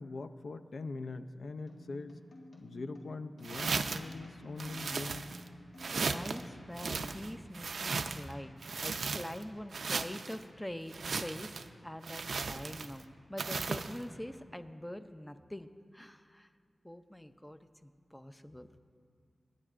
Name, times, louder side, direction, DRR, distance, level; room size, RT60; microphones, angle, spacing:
voice 1, 0.0-2.1 2.6-5.3, left 3 dB, 70° left, 9 dB, 0.5 m, -42 dB
sound 1, 1.7-7.4, equal, 85° left, 1.7 m, -53 dB
sound 2, 3.4-4.1 4.6-5.5 5.8-6.4 6.7-8.3 8.6-9.4 9.7-10.4 10.9-11.7 12.0-13.0 13.4-14.0, right 4 dB, 85° right, 0.4 m, -36 dB
voice 2, 6.0-8.5 8.8-16.5 16.8-18.7, left 1 dB, 10° left, 10 dB, 0.4 m, -44 dB
26.5 x 10.0 x 2.5 m, 2.3 s
wide cardioid pair, 120°, 0 cm